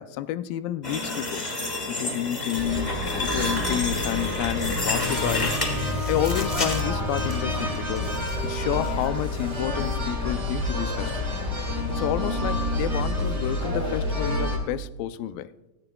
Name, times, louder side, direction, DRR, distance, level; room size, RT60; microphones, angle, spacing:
voice 1, 0.0-1.5 1.9-5.5 6.1-8.1 8.4-11.3 11.9-15.5, left 12 dB, 85° left, 2.3 m, -30 dB
sound 1, 0.8-7.3 7.8-8.3 8.7-8.9 9.4-9.5, left 2 dB, 40° left, 0.6 m, -30 dB
sound 2, 2.6-14.6, left 1 dB, 15° right, 1.2 m, -28 dB
17.5 x 14.0 x 2.3 m
omnidirectional pair, 4.0 m